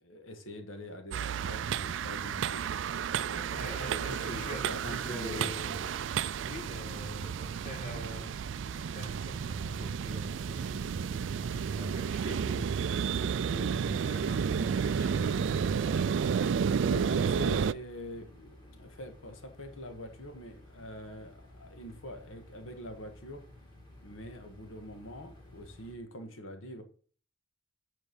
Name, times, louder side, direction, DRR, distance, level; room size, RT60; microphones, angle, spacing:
voice 1, 0.0-2.7 3.2-5.5 16.8-23.5 23.9-26.8, equal, 85° left, 1.7 m, -44 dB
sound 1, 1.1-17.7, right 7 dB, 65° right, 0.3 m, -32 dB
voice 2, 3.5-6.0 6.4-8.4 8.8-16.3, equal, 40° left, 3.2 m, -43 dB
sound 2, 5.8-11.7, right 2 dB, 90° right, 0.8 m, -51 dB
sound 3, 8.6-26.0, left 1 dB, 20° left, 2.7 m, -54 dB
9.3 x 4.5 x 5.5 m
head